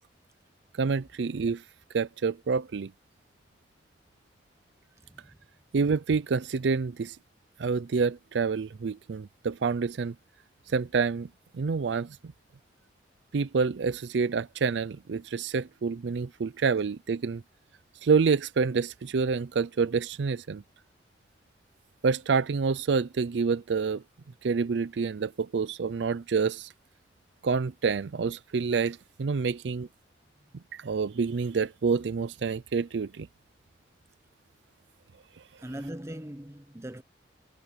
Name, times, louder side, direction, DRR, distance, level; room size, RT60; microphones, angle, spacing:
voice 1, 0.8-1.6 1.9-2.9 5.7-7.2 7.6-10.1 10.7-11.3 11.5-12.2 13.3-17.4 18.0-20.6 22.0-24.0 24.4-26.7 27.4-29.9 30.7-33.3, right 5 dB, 70° right, 0.4 m, -27 dB
voice 2, 5.0-5.3 35.6-37.0, right 1 dB, 15° right, 1.0 m, -40 dB
head